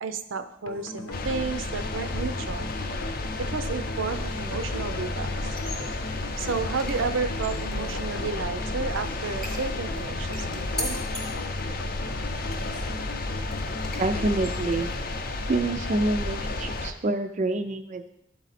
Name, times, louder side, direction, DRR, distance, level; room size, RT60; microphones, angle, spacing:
voice 1, 0.0-2.7 3.4-5.3 6.4-11.0, right 4 dB, 80° right, 9 dB, 0.6 m, -32 dB
sound 1, 0.7-15.7, left 2 dB, 90° left, 0.9 m, -40 dB
sound 2, 1.1-16.9, left 2 dB, 45° left, 0.6 m, -32 dB
sound 3, 5.5-15.3, equal, 5° left, 0.8 m, -42 dB
voice 2, 13.9-14.9 15.5-18.1, right 2 dB, 35° right, 7 dB, 0.4 m, -27 dB
12.0 x 4.0 x 4.1 m, 0.80 s
head